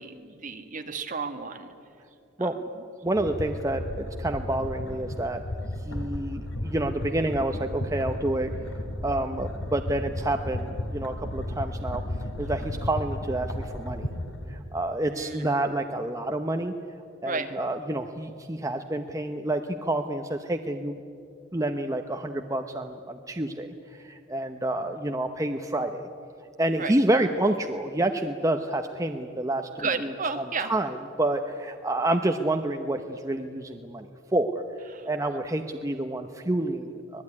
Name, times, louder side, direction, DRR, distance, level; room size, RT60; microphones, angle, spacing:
voice 1, 0.0-1.7 2.4-2.5 15.1-15.5 17.3-17.5 26.8-26.9 29.8-30.7 34.9-35.1, right 4 dB, 40° right, 6 dB, 1.9 m, -32 dB
voice 2, 3.0-5.4 5.8-8.5 9.0-12.0 12.4-14.1 14.5-16.7 17.2-21.0 21.5-26.1 26.6-30.1 30.4-34.6 35.1-37.2, right 1 dB, 15° right, 5 dB, 0.9 m, -28 dB
sound 1, 3.1-14.6, left 1 dB, 85° left, 2.7 m, -34 dB
25.0 x 19.5 x 9.8 m, 2.6 s
head